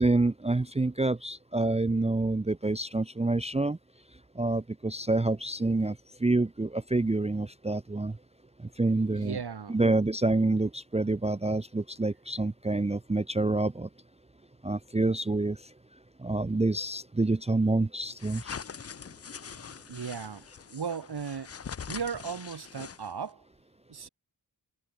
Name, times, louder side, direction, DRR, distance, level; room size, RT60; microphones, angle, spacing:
voice 1, 0.0-3.8 4.4-6.0 6.2-8.1 8.8-9.4 9.7-13.9 14.6-15.6 16.2-18.5, right 2 dB, 15° right, 0.5 m, -27 dB
voice 2, 9.1-9.8 19.9-21.5 21.9-23.4 23.9-24.1, right 6 dB, 60° right, 1.2 m, -36 dB
sound 1, 18.2-23.3, left 6 dB, 35° left, 0.5 m, -43 dB
wide cardioid pair, 60°, 43 cm